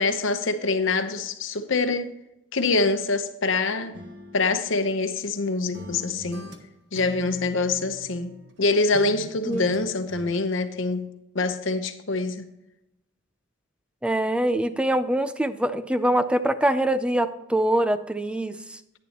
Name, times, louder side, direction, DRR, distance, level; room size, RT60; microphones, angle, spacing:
voice 1, 0.0-2.1 2.5-4.0 4.3-6.5 6.9-12.5, left 3 dB, 65° left, 9 dB, 0.9 m, -25 dB
sound 1, 3.9-5.4 5.7-8.6 8.9-10.3, right 1 dB, 60° right, 1.2 m, -42 dB
voice 2, 14.0-18.8, right 1 dB, 5° right, 11 dB, 0.4 m, -24 dB
10.0 x 10.0 x 2.9 m, 0.89 s
head